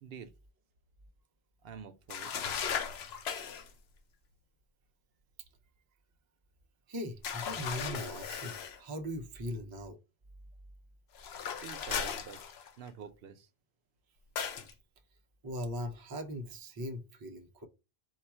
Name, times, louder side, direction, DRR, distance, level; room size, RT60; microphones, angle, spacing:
voice 1, 0.0-0.3 1.6-2.3 11.4-12.4 12.8-13.5, right 7 dB, 75° right, 0.8 m, -47 dB
sound 1, 2.1-3.7 7.2-8.8 11.1-12.9 14.4-14.7, left 7 dB, 80° left, 0.9 m, -37 dB
voice 2, 6.9-10.0 15.4-17.7, equal, 30° right, 0.4 m, -39 dB
4.4 x 2.4 x 4.3 m
omnidirectional pair, 1.0 m